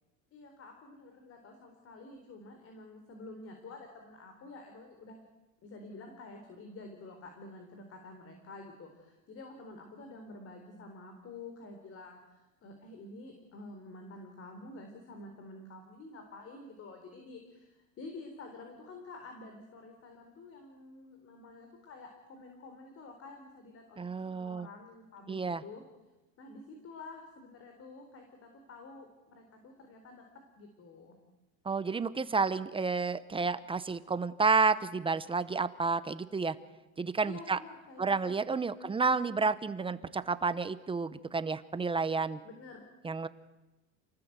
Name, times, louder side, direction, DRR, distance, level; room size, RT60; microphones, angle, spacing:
voice 1, 0.3-5.2 5.6-25.8 26.4-30.2 30.6-31.2 37.2-38.3 38.6-38.9 42.4-42.8, left 2 dB, 35° left, 5 dB, 4.1 m, -49 dB
voice 2, 24.0-24.7 25.3-25.6 31.6-36.6 37.0-37.6 38.0-42.4 43.0-43.3, right 4 dB, 15° right, 14 dB, 0.7 m, -30 dB
29.0 x 19.5 x 8.1 m, 1.1 s
cardioid pair, 145°, 40 cm